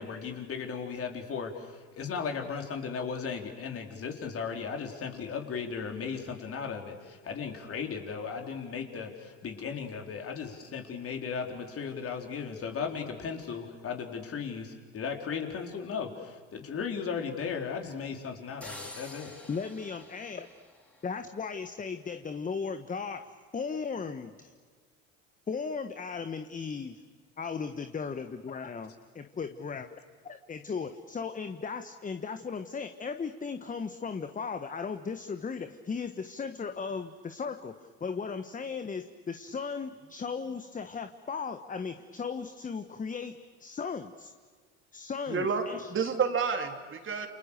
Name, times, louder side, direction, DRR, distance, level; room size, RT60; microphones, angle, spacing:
voice 1, 0.0-19.3, left 6 dB, 40° left, 3 dB, 4.4 m, -36 dB
sound 1, 18.6-21.5, left 1 dB, 5° left, 5.5 m, -48 dB
voice 2, 19.5-20.5 21.0-24.5 25.5-27.0 27.4-30.0 30.2-44.3 44.9-45.9, left 5 dB, 20° left, 9 dB, 1.4 m, -36 dB
voice 3, 45.3-47.3, right 5 dB, 35° right, 5 dB, 3.5 m, -30 dB
29.5 x 28.5 x 6.8 m, 1.5 s
hypercardioid pair, 70°, 35 cm